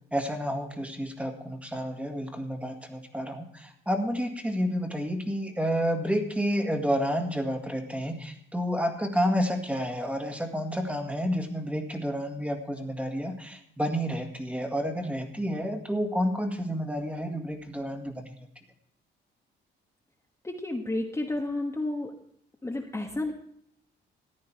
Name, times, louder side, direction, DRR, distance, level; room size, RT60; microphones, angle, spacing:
voice 1, 0.1-18.3, equal, 5° right, 5 dB, 1.9 m, -30 dB
voice 2, 20.4-22.1 22.6-23.3, left 2 dB, 15° left, 1 dB, 1.4 m, -31 dB
14.5 x 9.5 x 4.7 m, 0.66 s
cardioid pair, 90°, 20 cm